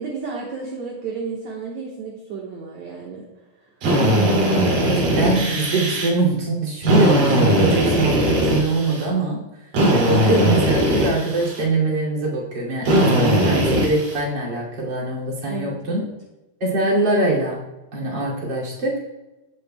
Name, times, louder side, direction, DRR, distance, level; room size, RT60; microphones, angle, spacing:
voice 1, 0.0-3.2 15.5-16.1, right 4 dB, 60° right, -2 dB, 2.2 m, -32 dB
Drill, 3.8-6.1 6.8-9.1 9.7-11.6 12.8-14.2, equal, 80° right, 4.5 m, -19 dB
voice 2, 4.2-9.4 9.9-16.0 16.6-17.6 17.9-19.0, right 2 dB, 35° right, -4 dB, 2.8 m, -23 dB
17.0 x 8.4 x 2.2 m, 1.0 s
omnidirectional pair, 4.2 m